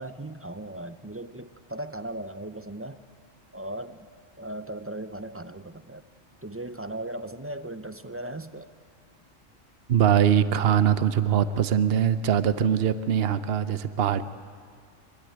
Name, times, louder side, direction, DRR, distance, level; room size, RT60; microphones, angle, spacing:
voice 1, 0.0-3.0 3.5-4.1 4.4-6.0 6.4-8.7, right 1 dB, 15° right, 12 dB, 0.4 m, -37 dB
voice 2, 9.9-14.2, right 9 dB, 55° right, 13 dB, 1.0 m, -22 dB
24.0 x 23.5 x 9.2 m, 2.1 s
omnidirectional pair, 1.3 m